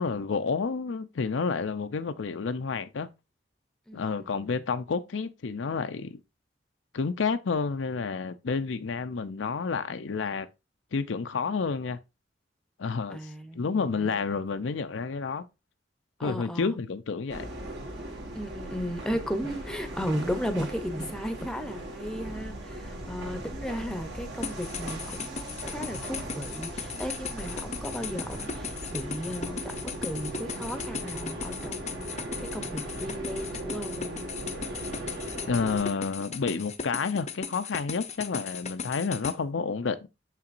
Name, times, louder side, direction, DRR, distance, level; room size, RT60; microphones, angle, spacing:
voice 1, 0.0-3.1 3.9-6.2 6.9-10.5 10.9-12.0 12.8-15.5 16.2-17.5 35.5-40.1, left 5 dB, 90° left, 0.5 m, -30 dB
voice 2, 3.9-4.5 13.1-14.1 16.2-16.8 18.3-32.3 32.5-34.1, equal, 5° left, 0.7 m, -35 dB
sound 1, 17.3-35.9, right 1 dB, 65° right, 1.7 m, -38 dB
sound 2, 24.4-39.3, left 6 dB, 40° left, 0.6 m, -37 dB
6.7 x 5.8 x 2.5 m
head